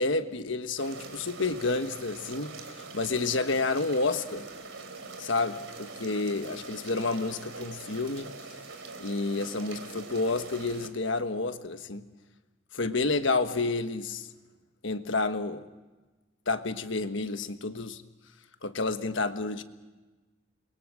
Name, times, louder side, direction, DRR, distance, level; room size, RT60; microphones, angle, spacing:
voice 1, 0.0-4.5 5.2-8.3 9.0-12.1 12.7-14.3 14.8-15.6 16.5-18.0 18.6-19.6, left 3 dB, 65° left, 1.3 m, -30 dB
sound 1, 0.8-10.9, right 4 dB, 75° right, 3.2 m, -43 dB
28.5 x 22.5 x 6.3 m
head